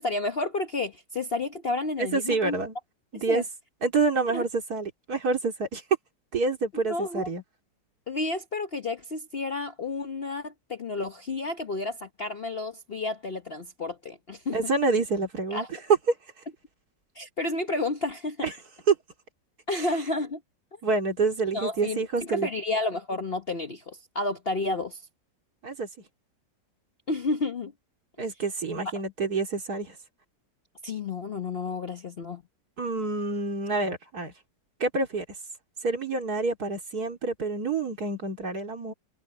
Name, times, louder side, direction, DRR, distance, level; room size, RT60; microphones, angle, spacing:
voice 1, 0.0-2.6 3.1-3.4 4.3-4.4 6.9-7.3 8.1-14.6 15.5-15.7 17.1-18.5 19.7-20.4 21.5-25.0 27.1-27.7 30.8-32.4, left 2 dB, 40° left, 1.0 m, -31 dB
voice 2, 2.0-2.7 3.1-3.4 3.8-5.8 6.3-7.4 14.5-15.7 18.4-18.5 18.9-19.0 20.8-22.5 25.6-25.9 28.2-30.0 32.8-34.3 34.8-35.3 35.8-38.9, right 3 dB, 55° right, 3.5 m, -27 dB
omnidirectional pair, 1.9 m